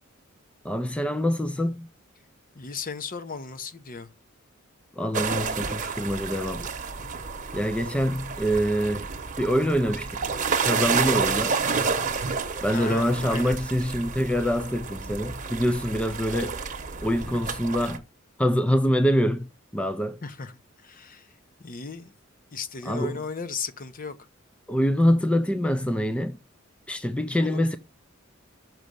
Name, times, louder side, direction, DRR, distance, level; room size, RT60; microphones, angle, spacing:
voice 1, 0.6-1.9 5.0-6.7 7.5-9.1 9.4-10.3 10.6-11.6 12.6-16.6 17.0-18.0 18.4-20.2 22.8-23.2 24.7-26.4 26.9-27.8, equal, 5° left, 0.4 m, -25 dB
voice 2, 2.6-4.1 12.7-13.6 20.2-20.5 20.8-21.3 21.6-22.1 22.5-24.2 27.3-27.6, left 5 dB, 45° left, 0.8 m, -35 dB
sound 1, 5.1-18.0, right 5 dB, 40° right, 1.0 m, -30 dB
6.3 x 6.2 x 6.7 m
head